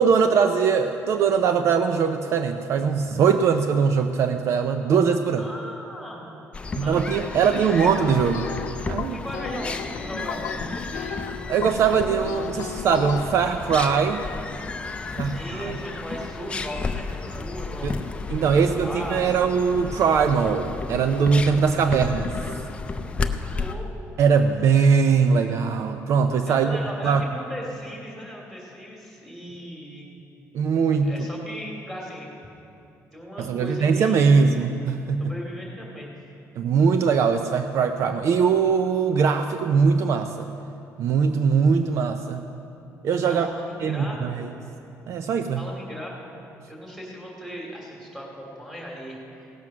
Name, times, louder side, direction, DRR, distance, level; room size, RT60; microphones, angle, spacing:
voice 1, 0.0-5.4 6.8-8.5 8.9-9.2 11.5-14.2 15.2-15.7 17.8-17.9 18.3-22.3 24.2-26.8 27.0-27.2 30.5-31.1 33.4-35.2 36.6-40.5 41.0-42.4 43.0-43.5 43.8-44.5 45.1-45.6, right 6 dB, 60° right, 7 dB, 0.5 m, -21 dB
voice 2, 5.4-7.0 7.4-7.9 9.1-11.2 14.9-17.9 18.5-19.4 23.2-23.9 26.4-30.2 31.0-32.3 33.1-34.5 35.2-36.2 43.2-44.5 45.6-46.3 46.7-49.5, equal, 5° right, -3 dB, 2.8 m, -37 dB
sound 1, 6.5-23.7, left 4 dB, 20° left, 0.5 m, -33 dB
sound 2, 8.0-13.3, left 7 dB, 70° left, 0.7 m, -34 dB
17.0 x 7.7 x 6.1 m, 2.8 s
cardioid pair, 140°, 6 cm